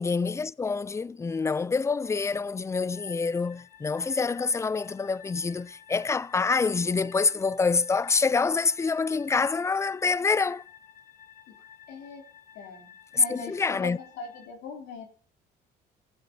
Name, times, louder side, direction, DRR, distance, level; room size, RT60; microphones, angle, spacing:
voice 1, 0.0-10.6 13.1-14.0, left 4 dB, 15° left, 0.4 m, -26 dB
sound 1, 2.9-14.5, left 8 dB, 60° left, 3.8 m, -52 dB
voice 2, 11.9-12.3 12.5-15.1, left 4 dB, 85° left, 3.2 m, -41 dB
16.0 x 7.7 x 3.9 m
cardioid pair, 110°, 17 cm